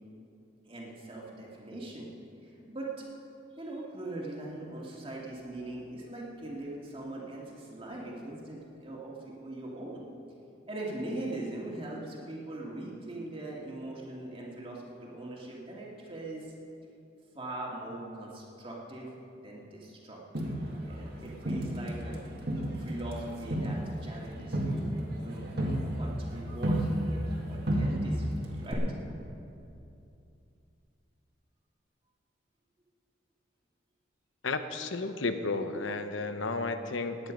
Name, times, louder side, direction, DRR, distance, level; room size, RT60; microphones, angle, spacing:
voice 1, 0.6-2.2 2.4-2.9 3.5-10.0 10.7-16.5 17.3-19.1 19.4-22.2 22.8-28.8, right 2 dB, 30° right, -3 dB, 2.3 m, -41 dB
Crowd, 20.3-22.1 22.5-27.4 27.7-28.3 28.7-28.8, right 1 dB, 55° right, 1.9 m, -31 dB
voice 2, 34.4-37.3, left 3 dB, 85° left, 9 dB, 0.9 m, -33 dB
18.0 x 9.7 x 5.3 m, 2.7 s
head